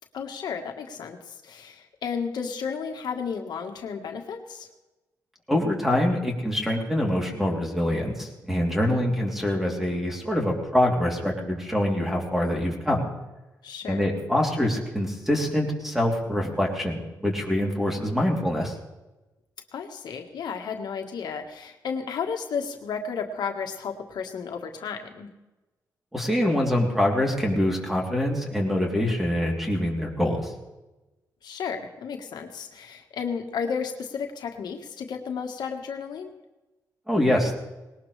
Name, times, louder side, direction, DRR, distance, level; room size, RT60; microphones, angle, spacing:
voice 1, 0.1-4.7 8.9-9.2 13.6-14.1 19.7-25.3 31.4-36.3, left 6 dB, 80° left, 4 dB, 1.5 m, -33 dB
voice 2, 5.5-13.1 13.9-18.8 26.1-30.5 37.1-37.5, left 1 dB, 5° right, 0 dB, 3.2 m, -25 dB
20.0 x 18.5 x 3.3 m, 1.1 s
cardioid pair, 105°, 7 cm